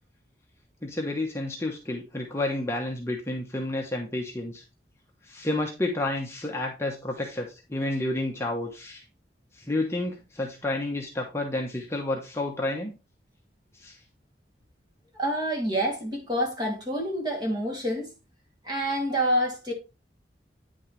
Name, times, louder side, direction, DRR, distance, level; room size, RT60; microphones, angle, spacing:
voice 1, 0.8-4.6 5.2-9.0 9.5-13.0 13.7-14.0, left 2 dB, 15° left, 1.0 m, -30 dB
voice 2, 15.1-18.1 18.6-19.7, equal, 25° right, 2.7 m, -27 dB
9.2 x 6.4 x 3.2 m
head